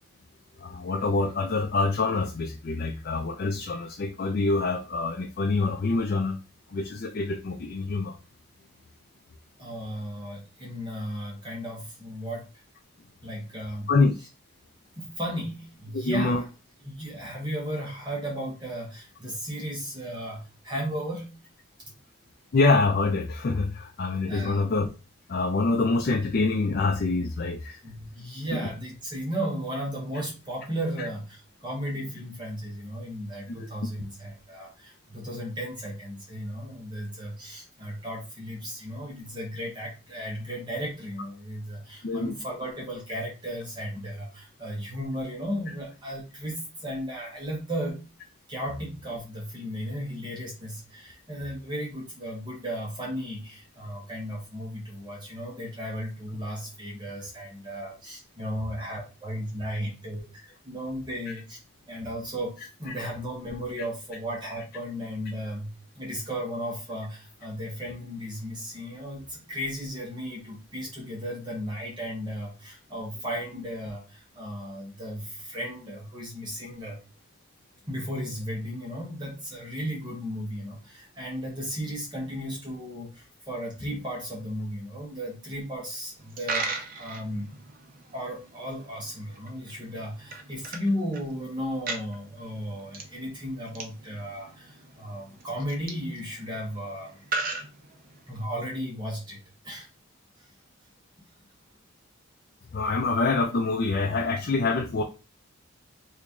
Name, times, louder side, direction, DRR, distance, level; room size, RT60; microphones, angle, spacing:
voice 1, 0.6-6.4 6.7-8.1 13.9-14.1 15.9-16.4 22.5-24.9 25.3-27.8 33.6-33.7 42.0-42.4 102.7-105.0, left 3 dB, 45° left, 3 dB, 0.4 m, -25 dB
voice 2, 9.6-12.5 13.2-13.9 14.2-14.3 15.0-16.4 16.8-21.4 24.3-24.6 27.8-48.0 48.5-61.6 61.9-77.0 77.9-87.5 88.1-97.2 98.3-99.4 99.6-99.9 100.4-100.5, equal, 20° right, -2 dB, 0.9 m, -35 dB
Coin (dropping), 86.2-98.5, right 3 dB, 40° right, 0.5 m, -39 dB
2.9 x 2.6 x 3.5 m, 0.31 s
head